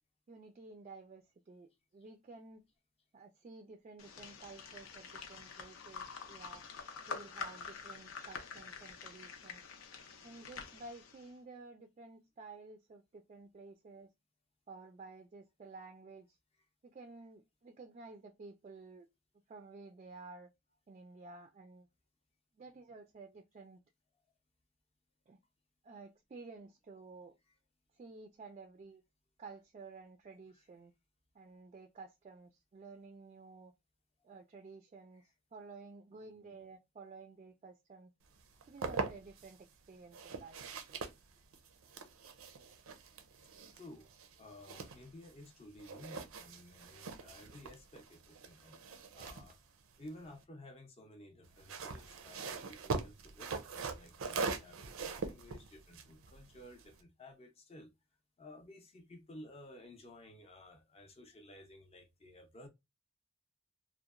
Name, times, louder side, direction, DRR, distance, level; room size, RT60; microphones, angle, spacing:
voice 1, 0.3-2.6 3.1-6.6 7.1-9.6 10.2-14.1 14.7-16.3 16.9-19.1 19.5-20.5 20.9-21.9 22.6-23.8 25.3-25.4 25.8-27.3 28.0-29.0 29.4-30.9 31.4-33.7 34.2-35.2 35.5-38.1 38.7-39.6 39.9-40.6 40.9-41.0, right 3 dB, 35° right, 0.3 m, -53 dB
sound 1, 4.0-11.3, left 5 dB, 85° left, 0.5 m, -47 dB
sound 2, 38.4-39.5 40.1-45.5 45.8-50.4 51.4-57.0, right 4 dB, 90° right, 0.5 m, -42 dB
voice 2, 43.7-44.1 44.4-48.8 49.1-49.6 50.0-57.9 58.4-62.7, left 1 dB, 30° left, 0.5 m, -54 dB
2.8 x 2.0 x 2.4 m
head